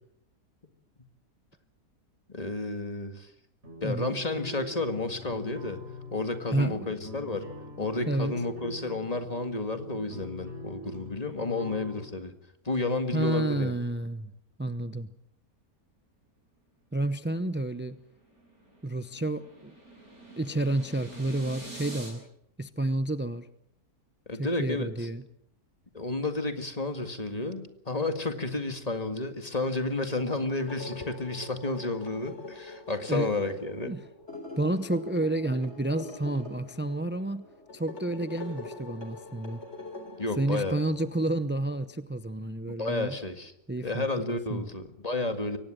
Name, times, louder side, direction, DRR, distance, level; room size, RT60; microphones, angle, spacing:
voice 1, 2.3-3.3 3.8-5.8 6.1-7.4 7.8-12.3 12.6-13.8 24.3-25.1 25.9-33.9 40.2-40.8 42.7-43.5 43.8-45.6, left 2 dB, 25° left, 7 dB, 2.0 m, -31 dB
sound 1, 3.6-12.0, left 2 dB, 45° right, 8.1 m, -43 dB
voice 2, 3.8-4.1 6.5-6.9 8.1-8.4 13.1-14.3 14.6-15.1 16.9-18.0 18.8-19.8 20.4-22.3 22.6-23.5 24.3-25.2 33.1-33.5 33.8-34.0 34.6-39.6 40.4-43.2 43.7-44.7, right 2 dB, 15° right, 12 dB, 0.3 m, -30 dB
sound 2, 17.8-22.1, right 2 dB, 70° right, 8.6 m, -46 dB
sound 3, 30.5-41.2, left 3 dB, 45° left, 4.3 m, -44 dB
23.5 x 18.5 x 7.7 m, 0.76 s
omnidirectional pair, 1.6 m